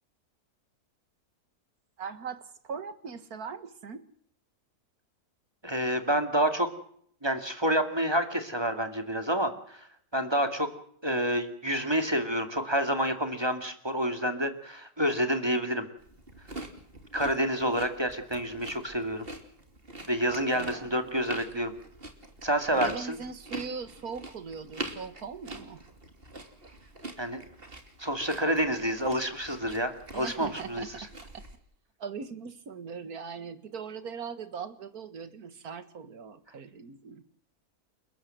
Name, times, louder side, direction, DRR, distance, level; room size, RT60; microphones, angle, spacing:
voice 1, 2.0-4.0 20.5-20.9 22.7-25.8 30.1-31.1 31.3-31.5 32.0-37.2, right 6 dB, 70° right, 12 dB, 2.1 m, -40 dB
voice 2, 5.6-6.7 7.2-9.9 10.1-10.7 11.0-15.9 17.1-19.3 20.1-21.7 22.4-23.2 27.2-27.4 28.0-31.1, equal, 15° right, 8 dB, 2.3 m, -28 dB
eating carrots, 16.0-31.6, right 2 dB, 35° right, 3.1 m, -44 dB
30.0 x 13.5 x 7.8 m, 0.64 s
omnidirectional pair, 1.6 m